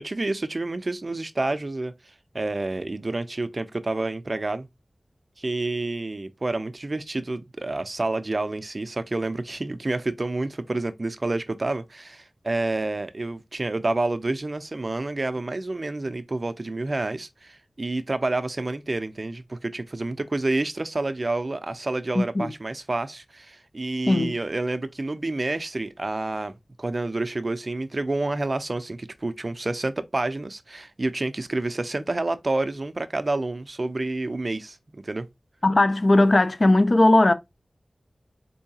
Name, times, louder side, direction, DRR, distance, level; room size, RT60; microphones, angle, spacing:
voice 1, 0.0-1.9 2.3-4.7 5.4-35.3, right 2 dB, 50° right, 0.5 m, -29 dB
voice 2, 22.2-22.5 24.1-24.3 35.6-37.3, left 2 dB, 50° left, 0.5 m, -18 dB
4.6 x 2.7 x 2.7 m
wide cardioid pair, 50°, 0 cm